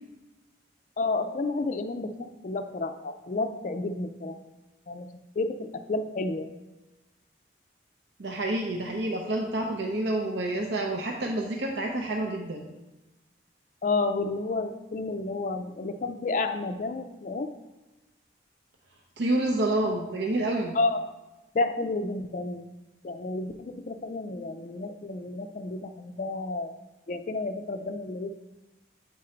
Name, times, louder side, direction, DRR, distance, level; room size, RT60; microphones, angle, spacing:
voice 1, 1.0-4.4 4.9-5.1 5.4-6.5 13.8-17.5 20.7-21.0 21.5-22.6 23.0-26.7 27.1-28.3, left 3 dB, 45° left, 7 dB, 0.4 m, -31 dB
voice 2, 8.2-12.6 19.2-20.7, right 1 dB, 70° right, 1 dB, 0.7 m, -28 dB
8.3 x 3.8 x 4.3 m, 1.1 s
head